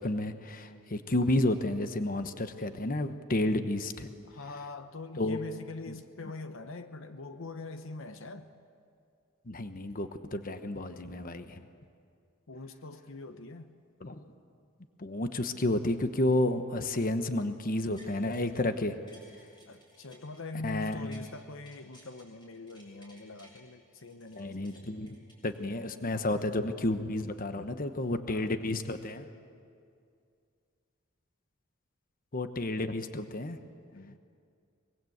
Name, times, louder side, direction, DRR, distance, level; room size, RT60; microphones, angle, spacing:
voice 1, 0.0-4.1 5.2-5.4 9.5-11.7 14.0-14.2 15.0-19.0 20.6-21.3 24.4-25.2 25.4-29.3 32.3-33.6, left 1 dB, 45° left, 9 dB, 1.1 m, -31 dB
voice 2, 4.2-8.5 12.5-13.7 19.7-24.9 28.3-28.5 33.9-34.2, left 3 dB, 70° left, 9 dB, 1.0 m, -43 dB
sound 1, 17.7-18.6 18.9-21.3 21.6-23.6 24.0-26.0 26.4-26.5, equal, 20° left, 7.5 m, -59 dB
24.0 x 22.0 x 8.0 m, 2.3 s
head